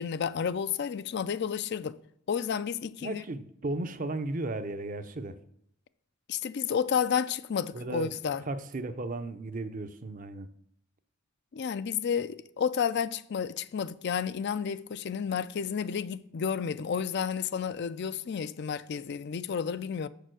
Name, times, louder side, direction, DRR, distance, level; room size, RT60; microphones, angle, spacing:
voice 1, 0.0-2.0 2.3-3.2 6.3-8.4 11.5-20.1, left 7 dB, 50° left, 0.4 m, -31 dB
voice 2, 3.0-5.4 7.7-8.1 8.5-10.5, right 2 dB, 35° right, 0.6 m, -35 dB
7.0 x 6.7 x 6.3 m
head